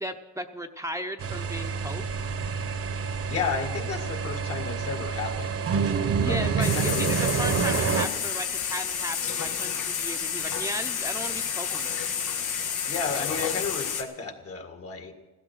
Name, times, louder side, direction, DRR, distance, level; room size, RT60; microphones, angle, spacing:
voice 1, 0.0-2.0 6.2-12.1, equal, 10° right, 5 dB, 0.8 m, -35 dB
sound 1, 1.2-8.1, right 6 dB, 50° right, 1.0 m, -28 dB
voice 2, 3.3-5.7 6.2-7.1 12.9-15.2, left 5 dB, 50° left, 6 dB, 2.0 m, -33 dB
sound 2, 6.6-14.0, left 7 dB, 85° left, 1.6 m, -30 dB
15.5 x 12.5 x 6.4 m, 1.2 s
cardioid pair, 90°, 30 cm